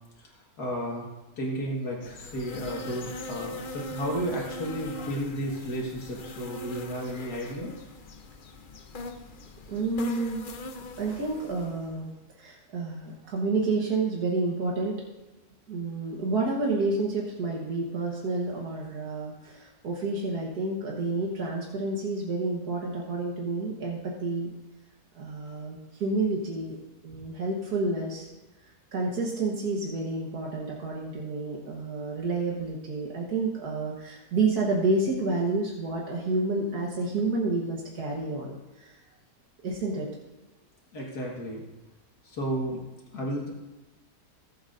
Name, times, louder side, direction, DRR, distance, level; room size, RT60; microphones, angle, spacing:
voice 1, 0.2-1.0 1.4-7.8 40.9-41.6 42.2-42.8 43.1-43.5, equal, 80° left, -3 dB, 2.3 m, -33 dB
sound 1, 2.0-12.0, left 2 dB, 50° left, 0.6 m, -41 dB
voice 2, 9.7-10.5 11.0-15.0 15.7-24.5 25.1-26.8 27.0-28.3 28.9-39.0 39.6-40.1, right 3 dB, 80° right, -2 dB, 1.9 m, -29 dB
18.5 x 8.0 x 2.6 m, 1.1 s
omnidirectional pair, 1.7 m